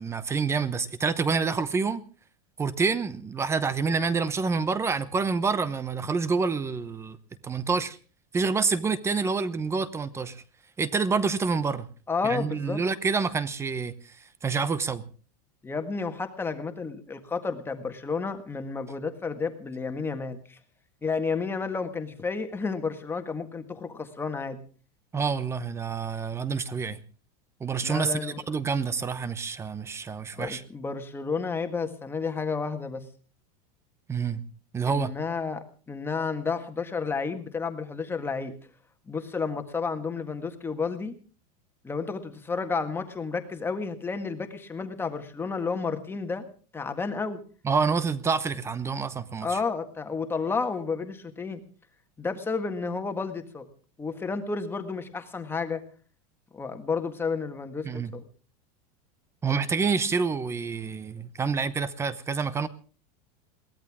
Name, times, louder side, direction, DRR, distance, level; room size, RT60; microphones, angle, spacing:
voice 1, 0.0-2.0 2.6-7.2 7.4-8.0 8.3-10.4 10.8-11.9 12.2-13.9 14.4-15.0 25.1-27.0 27.6-30.6 34.1-34.4 34.7-35.1 47.6-49.6 57.8-58.1 59.4-62.7, right 5 dB, 15° right, 0.8 m, -27 dB
voice 2, 12.1-12.8 15.6-20.6 21.0-24.6 27.8-28.4 30.4-33.0 34.9-38.5 39.1-41.2 41.8-46.5 46.7-47.4 49.4-51.6 52.2-53.7 54.0-55.8 56.5-57.9 58.1-58.2, left 4 dB, 10° left, 1.7 m, -31 dB
22.5 x 17.0 x 3.6 m
supercardioid pair, 155°, 20 cm